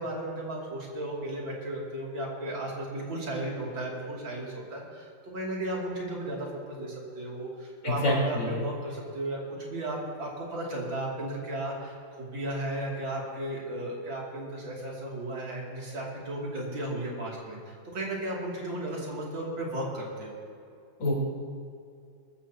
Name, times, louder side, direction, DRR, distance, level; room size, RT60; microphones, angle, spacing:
voice 1, 0.0-9.4 9.7-20.4, right 1 dB, 90° right, -3 dB, 3.5 m, -35 dB
voice 2, 7.8-8.5 21.0-21.2, left 1 dB, 70° left, -4 dB, 4.4 m, -26 dB
21.0 x 14.0 x 2.9 m, 2.4 s
omnidirectional pair, 2.1 m